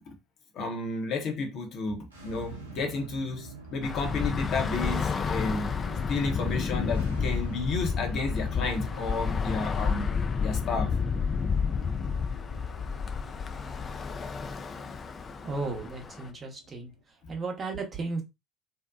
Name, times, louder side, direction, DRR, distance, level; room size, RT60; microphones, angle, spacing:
voice 1, 0.5-5.7 6.1-10.1 10.4-10.9, left 3 dB, 50° left, 0.7 m, -32 dB
sound 1, 2.0-17.0, right 3 dB, 90° right, 0.5 m, -47 dB
Bus / Traffic noise roadway noise, 3.8-16.3, left 5 dB, 30° left, 0.3 m, -30 dB
voice 2, 15.4-16.9 17.3-18.2, right 3 dB, 35° right, 0.8 m, -34 dB
2.7 x 2.1 x 2.3 m
figure-of-eight pair, 60°, 0 cm